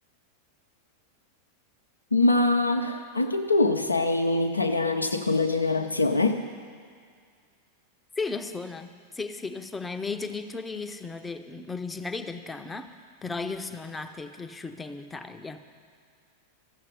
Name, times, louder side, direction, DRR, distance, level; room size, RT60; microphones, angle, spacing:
voice 1, 2.1-6.4, left 2 dB, 80° left, 3 dB, 0.6 m, -24 dB
voice 2, 8.2-15.6, left 4 dB, 10° left, 7 dB, 0.7 m, -35 dB
14.0 x 7.5 x 9.6 m, 2.1 s
figure-of-eight pair, 90°, 0 cm